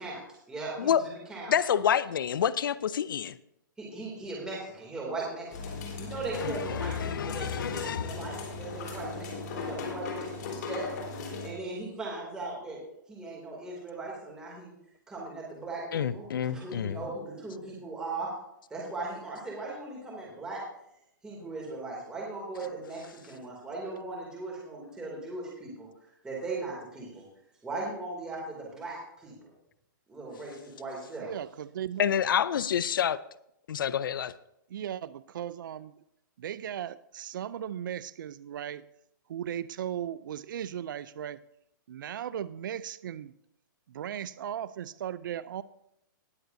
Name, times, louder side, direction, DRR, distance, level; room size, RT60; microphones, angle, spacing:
voice 1, 0.0-1.5 3.8-10.9 11.4-12.8 13.1-14.7 15.1-18.3 18.7-20.6 21.2-25.9 26.2-27.2 27.6-29.5 30.1-31.3, right 3 dB, 5° right, -4 dB, 2.5 m, -38 dB
voice 2, 1.5-3.4 6.3-8.2 15.9-17.0 32.0-33.2 33.7-34.3, left 8 dB, 80° left, 18 dB, 0.5 m, -28 dB
sound 1, 5.5-11.5, left 3 dB, 55° left, 3.6 m, -38 dB
voice 3, 31.2-32.0 34.7-35.9 36.4-38.8 39.3-41.4 41.9-43.3 43.9-45.6, right 10 dB, 70° right, 15 dB, 0.4 m, -37 dB
19.5 x 8.0 x 2.6 m, 0.76 s
hypercardioid pair, 160°, 11 cm